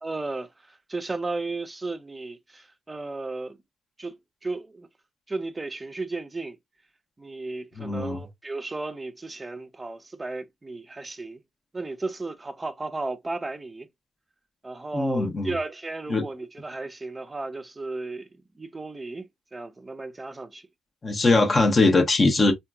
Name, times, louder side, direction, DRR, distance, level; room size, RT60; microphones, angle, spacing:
voice 1, 0.0-3.6 4.0-4.9 5.3-6.6 7.2-11.4 11.7-13.9 14.6-20.7, right 3 dB, 25° right, 0.6 m, -34 dB
voice 2, 7.8-8.2 14.9-15.5 16.1-16.2 21.0-22.5, left 3 dB, 35° left, 0.9 m, -21 dB
2.8 x 2.5 x 2.3 m
supercardioid pair, 60°, 0 cm